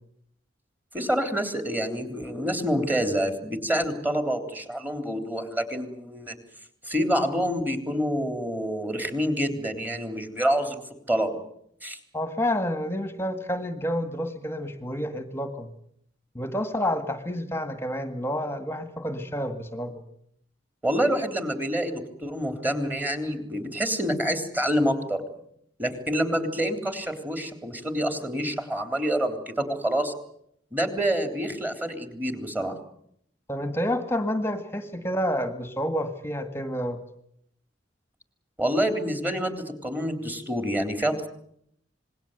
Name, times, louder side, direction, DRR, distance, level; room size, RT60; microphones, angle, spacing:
voice 1, 0.9-6.4 6.8-11.4 11.8-12.0 20.8-25.2 25.8-30.1 30.7-32.8 38.6-41.3, equal, 10° right, 7 dB, 3.4 m, -27 dB
voice 2, 12.1-15.7 16.4-20.0 33.5-37.0, equal, 15° left, 9 dB, 1.8 m, -29 dB
27.5 x 21.0 x 8.0 m, 0.72 s
head